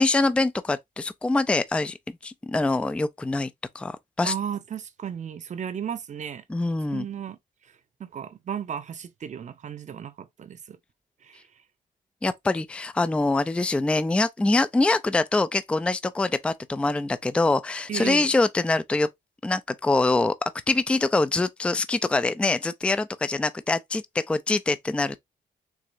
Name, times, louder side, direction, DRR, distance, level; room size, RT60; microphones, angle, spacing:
voice 1, 0.0-2.0 2.2-4.3 6.5-7.1 12.2-19.1 19.4-20.3 20.7-25.2, left 2 dB, 5° left, 0.3 m, -24 dB
voice 2, 4.2-6.4 6.9-7.4 8.0-10.8 11.2-11.4 17.9-18.3, right 8 dB, 50° right, 0.7 m, -34 dB
4.7 x 3.1 x 2.6 m
cardioid pair, 90°, 16 cm